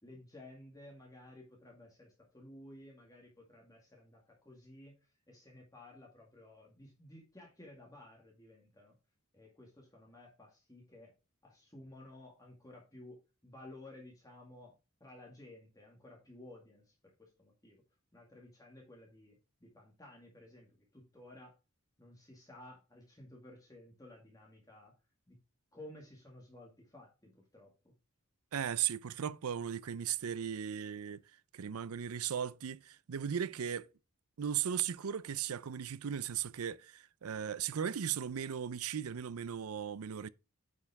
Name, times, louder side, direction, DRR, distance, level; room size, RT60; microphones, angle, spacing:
voice 1, 0.0-8.9 9.3-11.1 11.4-13.2 13.4-14.7 15.0-17.8 18.1-21.5 22.0-25.0 25.3-25.4 25.7-27.7, left 1 dB, 15° left, 2.0 m, -55 dB
voice 2, 28.5-31.2 31.5-33.9 34.4-40.3, right 8 dB, 85° right, 0.5 m, -37 dB
9.2 x 5.5 x 3.5 m
head